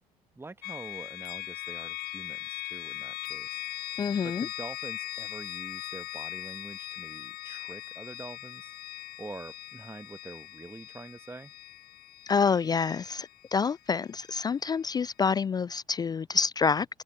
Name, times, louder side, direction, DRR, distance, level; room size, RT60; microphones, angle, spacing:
voice 1, 0.3-3.6 3.9-8.8 9.2-11.5, right 2 dB, 15° right, 1.4 m, -45 dB
sound 1, 0.6-14.4, left 17 dB, 55° left, 0.9 m, -40 dB
voice 2, 4.0-4.5 12.3-16.9, left 5 dB, 20° left, 0.3 m, -27 dB
figure-of-eight pair, 55°, 18 cm